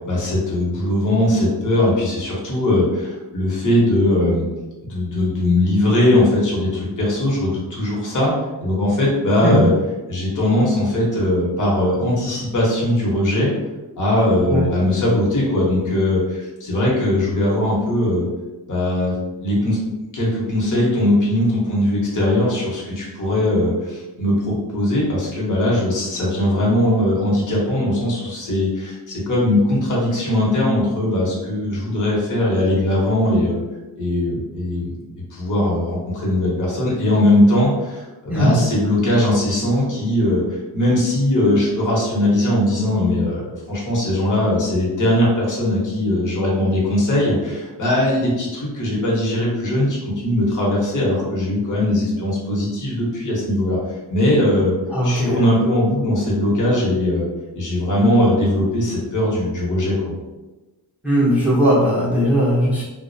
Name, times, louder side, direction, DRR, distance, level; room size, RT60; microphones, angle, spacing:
voice 1, 0.1-4.4 4.8-8.3 8.6-9.7 10.1-13.5 14.0-18.3 18.7-19.8 20.1-33.6 34.0-35.0 35.3-54.7 55.0-57.3 57.5-60.1, left 1 dB, 45° left, -5 dB, 0.9 m, -20 dB
voice 2, 54.9-55.4 61.0-62.8, equal, 5° right, -8 dB, 0.7 m, -18 dB
2.4 x 2.0 x 2.6 m, 1.1 s
wide cardioid pair, 105°, 42 cm